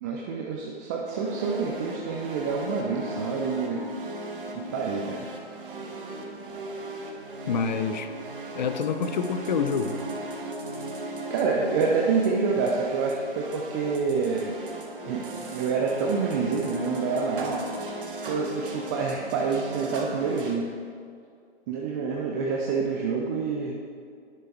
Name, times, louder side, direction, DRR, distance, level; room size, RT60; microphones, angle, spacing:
voice 1, 0.0-4.1 4.4-5.3 11.3-14.6 15.0-17.6 18.2-20.7 21.7-23.8, right 5 dB, 15° right, -1 dB, 0.5 m, -27 dB
sound 1, 1.1-20.6, right 1 dB, 50° right, 2.0 m, -37 dB
voice 2, 7.5-8.1 8.5-10.0, left 6 dB, 40° left, 9 dB, 0.7 m, -27 dB
10.0 x 10.0 x 4.6 m, 2.3 s
figure-of-eight pair, 130°, 33 cm